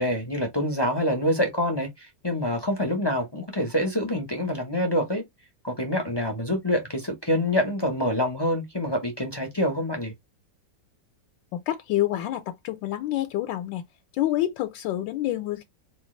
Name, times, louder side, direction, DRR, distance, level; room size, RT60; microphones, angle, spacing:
voice 1, 0.0-5.2 5.6-10.1, left 1 dB, 40° left, 0.3 m, -26 dB
voice 2, 11.5-13.8 14.1-15.6, left 14 dB, 80° left, 1.3 m, -27 dB
4.3 x 2.3 x 3.0 m
omnidirectional pair, 2.0 m